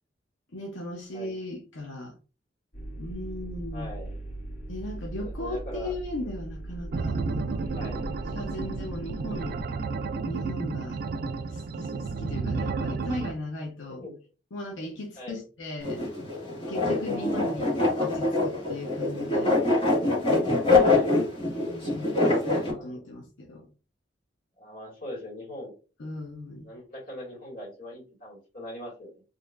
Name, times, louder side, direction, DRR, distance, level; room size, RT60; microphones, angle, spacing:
voice 1, 0.5-2.1 3.0-3.9 4.7-7.6 8.3-9.6 10.2-11.0 11.5-14.1 14.5-16.0 16.7-17.7 18.0-19.6 21.4-23.7 26.0-26.7, left 1 dB, 90° left, 0.9 m, -37 dB
sound 1, 2.7-9.6, right 1 dB, 65° left, 2.2 m, -39 dB
voice 2, 3.7-4.2 5.2-6.0 7.7-8.0 13.9-14.2 15.2-15.4 17.0-17.7 20.7-21.3 22.7-23.1 24.6-25.7 26.6-29.2, equal, 45° left, 2.1 m, -41 dB
sound 2, 6.9-13.3, right 4 dB, 50° right, 0.3 m, -32 dB
sound 3, 15.8-22.7, left 2 dB, 30° left, 1.8 m, -24 dB
4.1 x 3.0 x 2.5 m
head